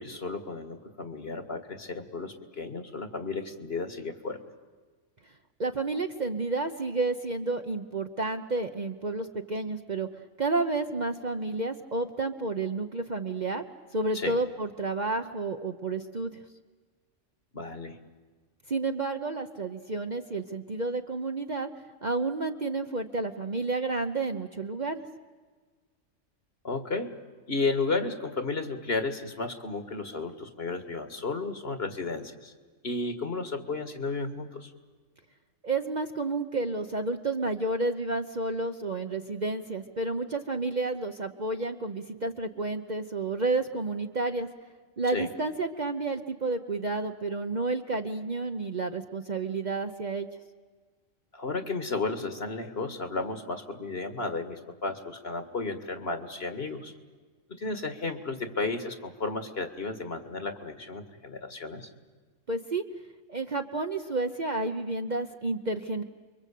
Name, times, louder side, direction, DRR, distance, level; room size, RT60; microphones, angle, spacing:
voice 1, 0.0-4.4 14.1-14.4 17.5-18.0 26.6-27.1 27.5-32.5 32.8-34.7 45.1-45.3 51.3-56.9 57.5-61.9, left 3 dB, 50° left, 9 dB, 2.2 m, -33 dB
voice 2, 5.6-10.1 10.4-13.6 13.9-16.3 18.7-21.7 22.0-25.0 35.6-44.5 45.0-50.3 62.5-62.8 63.3-66.0, right 3 dB, 40° right, 5 dB, 1.1 m, -30 dB
29.5 x 23.5 x 8.5 m, 1.4 s
omnidirectional pair, 1.3 m